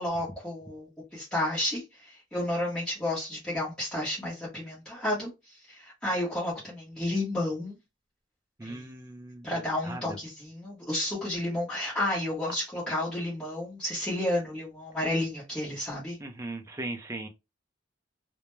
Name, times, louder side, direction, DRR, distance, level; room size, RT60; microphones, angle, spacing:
voice 1, 0.0-7.8 8.6-8.8 9.4-16.2, left 1 dB, 5° left, 0.8 m, -31 dB
voice 2, 8.6-9.6 9.8-10.2 16.2-17.3, right 2 dB, 15° right, 0.4 m, -38 dB
2.2 x 2.1 x 2.9 m
head